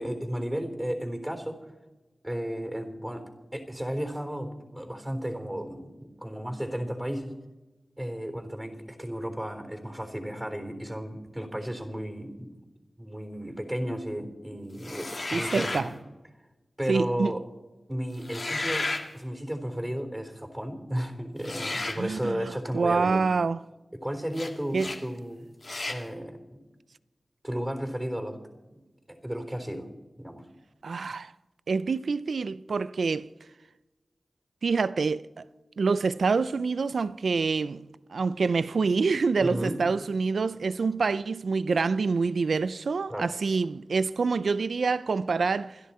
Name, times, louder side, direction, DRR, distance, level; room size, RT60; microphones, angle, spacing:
voice 1, 0.0-1.6 2.2-7.3 8.0-12.5 13.0-16.0 16.8-17.4 17.9-23.2 23.9-25.5 25.9-26.6 27.4-28.4 28.7-28.8 29.1-29.9 30.2-30.5 39.4-39.8 43.1-43.3, equal, 15° right, 3.8 m, -34 dB
sound 1, 14.8-15.9 18.2-19.1 21.4-22.0 24.3-24.5 24.8-25.0 25.6-26.0, left 2 dB, 55° left, 2.1 m, -33 dB
voice 2, 15.3-15.9 16.9-17.3 22.0-23.6 24.7-24.9 30.8-31.3 31.7-33.3 34.6-35.4 35.8-45.8, right 4 dB, 90° right, 0.4 m, -26 dB
27.5 x 10.5 x 4.3 m
cardioid pair, 45°, 0 cm